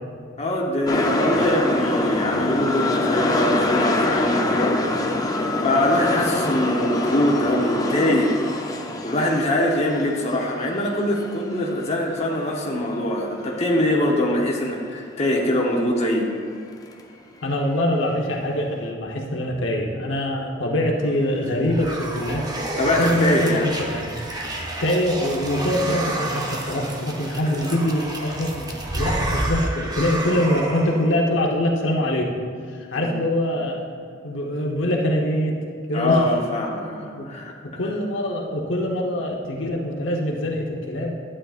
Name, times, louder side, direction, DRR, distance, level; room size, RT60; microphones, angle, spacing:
voice 1, 0.4-4.8 5.6-8.4 9.0-16.3 22.8-23.7 32.9-33.2 35.9-37.5, left 1 dB, 35° left, -2 dB, 1.0 m, -23 dB
sound 1, 0.9-12.9 13.2-13.3, left 2 dB, 20° left, 0.6 m, -25 dB
voice 2, 17.4-22.4 23.0-24.1 24.8-32.3 32.7-33.9 34.2-35.6 35.9-36.2 37.2-37.3 37.6-41.1, left 1 dB, 75° left, 0 dB, 1.0 m, -24 dB
sound 2, 21.2-31.2, right 1 dB, 20° right, 0.8 m, -30 dB
11.5 x 8.6 x 2.5 m, 2.1 s
head